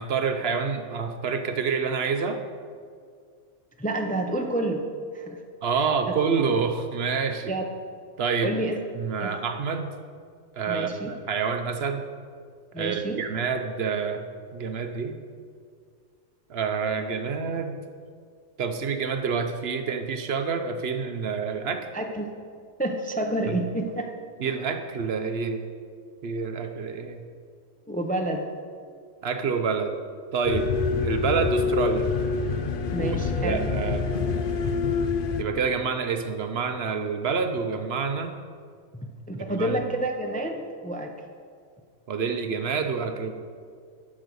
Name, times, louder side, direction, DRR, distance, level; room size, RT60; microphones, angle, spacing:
voice 1, 0.0-2.4 5.6-7.5 8.2-8.6 8.9-9.9 10.6-12.1 12.8-15.2 16.5-17.8 18.6-21.9 23.5-23.6 24.4-25.6 26.2-27.3 29.2-29.9 30.3-30.7 31.0-32.1 33.0-34.1 35.4-38.3 39.5-39.8 42.1-43.3, right 5 dB, 60° right, 7 dB, 0.9 m, -27 dB
voice 2, 3.8-4.9 5.1-5.4 7.5-7.7 8.4-8.7 9.2-9.3 10.7-11.1 12.7-13.2 21.9-22.3 22.8-24.1 27.9-28.5 32.9-33.6 39.3-41.1, right 1 dB, 10° left, 3 dB, 0.5 m, -28 dB
sound 1, 30.4-35.4, left 5 dB, 55° left, 0.8 m, -26 dB
9.8 x 6.3 x 6.8 m, 2.1 s
omnidirectional pair, 1.2 m